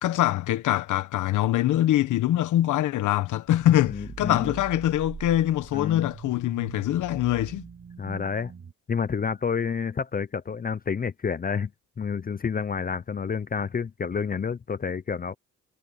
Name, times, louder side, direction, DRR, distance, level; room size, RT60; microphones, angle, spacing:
voice 1, 0.0-7.6, left 13 dB, 80° left, 1.2 m, -24 dB
sound 1, 3.5-8.7, right 6 dB, 45° right, 5.1 m, -43 dB
voice 2, 3.9-4.5 5.7-6.1 8.0-8.5 8.9-11.7 12.0-15.3, left 6 dB, 30° left, 0.7 m, -29 dB
cardioid pair, 90°, 30 cm